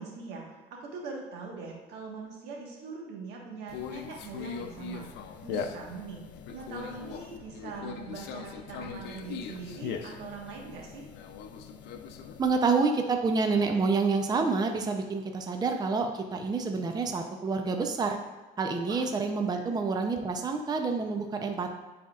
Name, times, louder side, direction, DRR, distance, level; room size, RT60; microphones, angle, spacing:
voice 1, 0.0-5.1 5.4-11.0 18.9-19.0 19.5-19.6, right 4 dB, 85° right, -1 dB, 1.4 m, -42 dB
Conversation, 3.7-12.5, left 7 dB, 90° left, 0.5 m, -40 dB
voice 2, 12.4-18.2 18.6-21.7, right 4 dB, 25° right, 4 dB, 0.6 m, -28 dB
9.7 x 4.3 x 2.4 m, 1.2 s
cardioid pair, 110°, 17 cm